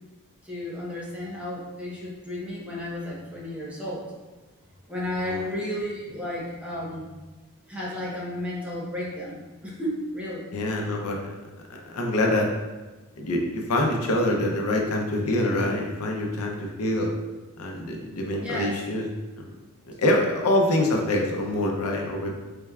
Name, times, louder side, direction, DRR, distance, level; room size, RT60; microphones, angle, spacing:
voice 1, 0.4-4.0 4.9-7.1 7.7-10.5 18.4-18.8, left 1 dB, 5° right, -6 dB, 0.9 m, -33 dB
voice 2, 10.5-11.2 11.9-12.5 13.2-17.1 17.6-19.0 19.4-19.5 20.0-22.3, left 1 dB, 85° left, 1 dB, 0.6 m, -25 dB
4.3 x 3.4 x 2.3 m, 1.2 s
head